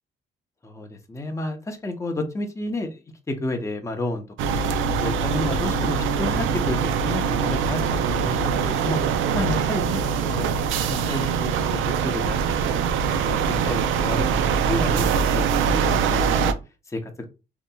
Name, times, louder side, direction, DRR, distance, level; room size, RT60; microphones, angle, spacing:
voice 1, 0.6-3.0 3.3-4.7 5.0-9.0 9.3-10.5 10.8-14.2 14.7-16.5 16.9-17.3, left 1 dB, 15° left, 4 dB, 0.6 m, -31 dB
sound 1, 4.4-16.5, right 6 dB, 80° right, 0.4 m, -23 dB
2.9 x 2.8 x 2.2 m, 0.29 s
cardioid pair, 90°, 20 cm